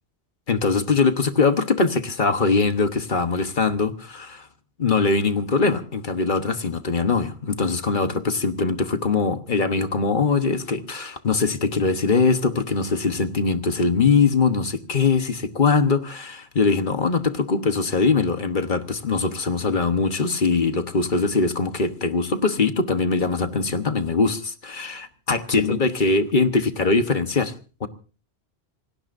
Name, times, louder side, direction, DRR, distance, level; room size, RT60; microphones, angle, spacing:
voice 1, 0.5-4.5 4.8-27.5 27.8-27.9, left 4 dB, 50° left, 1.3 m, -22 dB
27.5 x 17.5 x 2.6 m
omnidirectional pair, 1.1 m